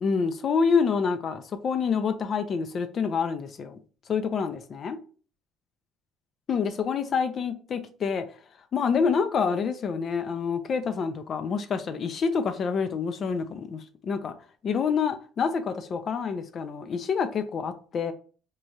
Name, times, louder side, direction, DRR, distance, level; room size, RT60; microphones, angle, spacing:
voice 1, 0.0-3.8 4.1-5.0 6.5-8.2 8.7-14.3 14.6-18.1, left 6 dB, 45° left, 0.3 m, -27 dB
3.0 x 2.3 x 2.6 m
cardioid pair, 110°, 0 cm